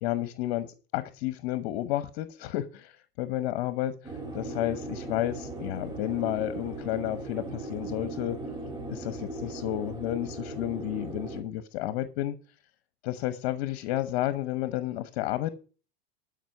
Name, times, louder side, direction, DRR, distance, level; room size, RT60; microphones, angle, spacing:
voice 1, 0.0-3.9 4.3-8.4 8.9-12.4 13.0-15.5, left 14 dB, 60° left, 1.1 m, -31 dB
sound 1, 4.0-11.4, right 2 dB, 15° right, 2.3 m, -38 dB
12.5 x 5.3 x 6.9 m
supercardioid pair, 135°, 31 cm